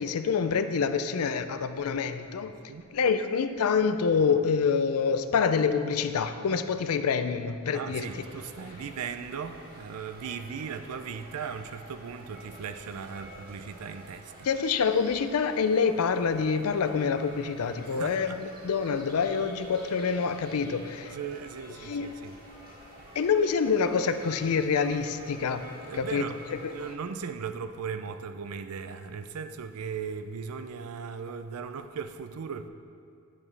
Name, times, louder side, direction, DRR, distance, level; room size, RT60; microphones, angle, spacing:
voice 1, 0.0-2.5 2.9-8.1 14.4-21.2 21.8-22.2 23.1-25.6 25.9-26.2 26.6-26.8, left 5 dB, 75° left, 10 dB, 0.4 m, -26 dB
voice 2, 2.4-2.9 7.7-14.5 17.9-18.4 21.0-22.4 23.1-23.2 25.8-32.7, right 6 dB, 80° right, 10 dB, 0.4 m, -38 dB
sound 1, 8.0-26.9, equal, 45° right, 1.6 m, -48 dB
9.5 x 7.5 x 3.3 m, 2.4 s
head